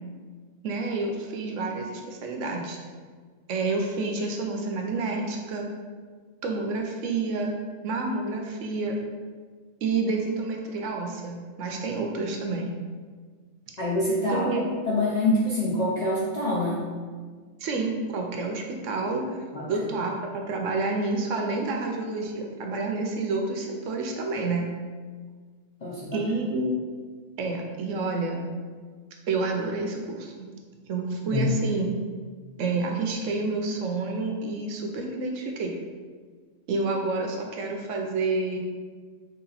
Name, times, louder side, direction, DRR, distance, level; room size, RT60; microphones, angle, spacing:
voice 1, 0.6-2.8 3.5-5.7 6.4-7.5 7.8-9.0 9.8-12.7 14.3-14.7 17.6-19.4 19.7-24.7 26.1-26.8 27.4-28.4 29.3-30.5 30.9-31.9 32.6-35.7 36.7-38.6, right 3 dB, 70° right, 2 dB, 0.9 m, -29 dB
voice 2, 13.8-14.5 14.9-16.8 19.5-19.6 25.8-26.2 31.2-31.5, left 1 dB, 55° left, -6 dB, 0.4 m, -25 dB
3.3 x 2.8 x 3.9 m, 1.5 s
omnidirectional pair, 1.4 m